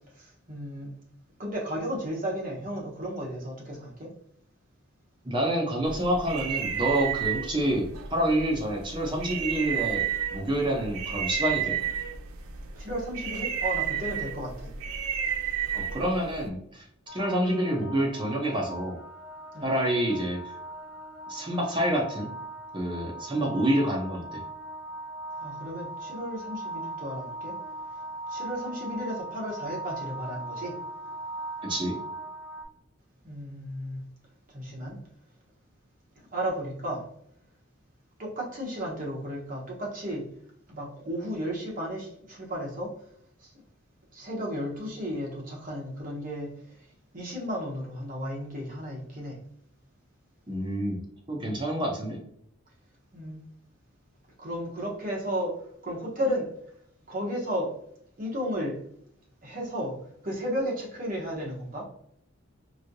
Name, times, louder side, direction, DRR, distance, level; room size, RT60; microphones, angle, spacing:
voice 1, 0.1-0.9 1.4-4.1 12.8-14.7 19.5-19.7 25.4-27.6 28.3-30.8 33.2-34.0 34.5-35.0 36.3-37.0 38.2-40.3 40.7-42.9 43.4-43.5 44.1-46.9 47.1-49.4 53.1-53.4 54.4-55.5 55.8-56.5 57.1-57.7 58.2-58.8 59.4-59.9 60.2-61.8, equal, 40° right, -3 dB, 1.0 m, -33 dB
voice 2, 5.2-10.0 10.3-11.8 15.7-19.0 19.6-20.4 21.3-22.3 22.7-24.4 31.6-32.0 50.5-51.0 51.3-52.2, right 1 dB, 20° right, -1 dB, 0.6 m, -28 dB
sound 1, 5.9-16.5, right 8 dB, 85° right, 0.4 m, -32 dB
sound 2, 17.1-32.6, right 1 dB, 70° left, 0.7 m, -39 dB
3.1 x 2.7 x 2.6 m, 0.69 s
head